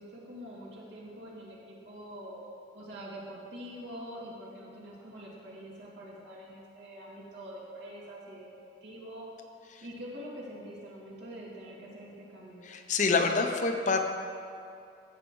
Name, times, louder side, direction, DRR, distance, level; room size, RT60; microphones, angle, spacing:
voice 1, 0.0-2.4 2.7-8.5 8.8-9.3 9.8-12.6, equal, 70° right, -5 dB, 2.5 m, -45 dB
voice 2, 12.6-14.0, left 4 dB, 40° left, 5 dB, 0.7 m, -26 dB
13.5 x 8.1 x 3.8 m, 2.5 s
head